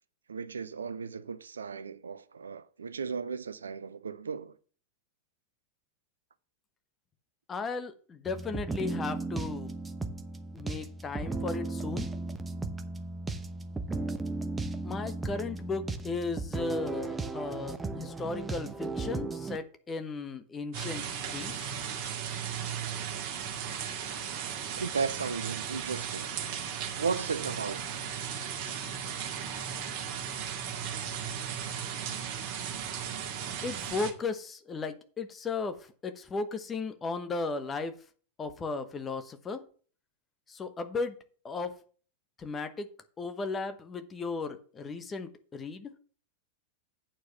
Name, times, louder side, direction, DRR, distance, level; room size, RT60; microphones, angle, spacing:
voice 1, 0.3-4.5 24.8-26.3 27.0-27.8, right 5 dB, 70° right, 0.5 m, -35 dB
voice 2, 7.5-9.7 10.5-12.1 14.8-21.7 33.6-38.0 38.4-39.6 40.5-41.2 41.4-41.8 42.4-42.9 43.2-45.9, left 4 dB, 20° left, 1.1 m, -36 dB
sound 1, 8.3-19.6, right 3 dB, 10° right, 0.9 m, -35 dB
sound 2, 20.7-34.1, right 8 dB, 45° right, 1.9 m, -36 dB
8.8 x 4.7 x 7.2 m
figure-of-eight pair, 90°, 0 cm